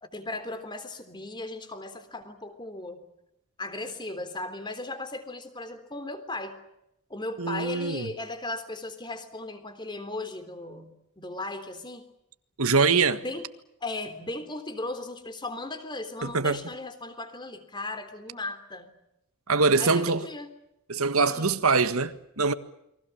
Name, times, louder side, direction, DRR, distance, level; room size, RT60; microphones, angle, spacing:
voice 1, 0.0-3.0 3.6-6.6 7.1-12.0 12.9-13.5 13.8-18.9 19.8-20.5 21.2-21.5, left 2 dB, 20° left, 3.5 m, -37 dB
voice 2, 7.4-8.1 12.6-13.2 16.2-16.6 19.5-20.3 20.9-22.5, right 4 dB, 75° right, 1.7 m, -23 dB
29.5 x 24.0 x 7.3 m
head